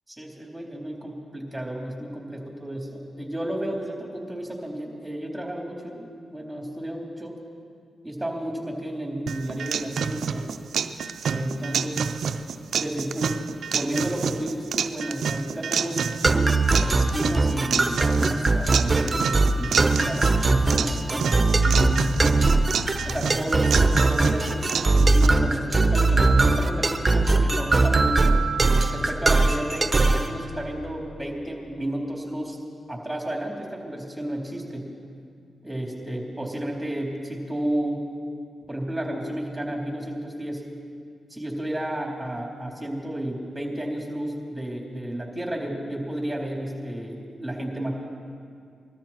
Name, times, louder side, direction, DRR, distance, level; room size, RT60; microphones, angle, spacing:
voice 1, 0.1-7.4 8.0-10.4 11.3-12.1 12.7-13.4 13.6-16.0 16.8-22.1 23.0-28.4 28.9-32.6 32.9-34.9 35.6-38.0 38.7-40.6 41.3-47.9, right 1 dB, 10° right, -1 dB, 4.1 m, -32 dB
sound 1, 9.3-25.3, right 6 dB, 75° right, 0.5 m, -29 dB
sound 2, 16.2-30.3, right 3 dB, 35° right, 1.0 m, -20 dB
21.0 x 13.5 x 4.5 m, 2.3 s
supercardioid pair, 45°, 0 cm